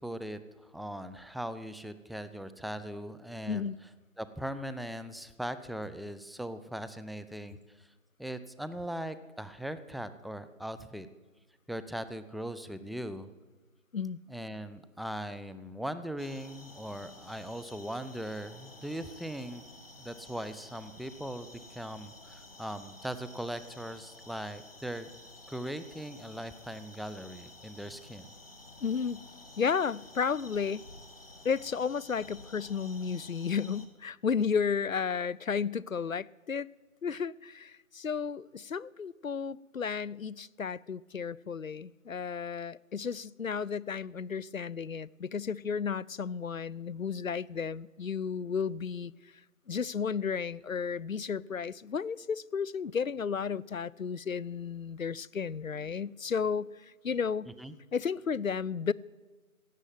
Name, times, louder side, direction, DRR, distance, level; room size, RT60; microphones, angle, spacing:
voice 1, 0.0-3.7 4.2-7.9 8.2-11.1 11.7-13.3 14.3-19.6 20.0-25.1 25.5-28.3 57.5-57.7, right 1 dB, ahead, 0.4 m, -39 dB
sound 1, 16.2-33.9, left 2 dB, 40° left, 2.0 m, -52 dB
voice 2, 28.8-29.2 29.6-30.9 31.4-36.7 37.0-49.1 49.7-57.5 57.9-58.9, left 6 dB, 70° left, 0.6 m, -33 dB
16.0 x 8.2 x 9.3 m
figure-of-eight pair, 175°, 41 cm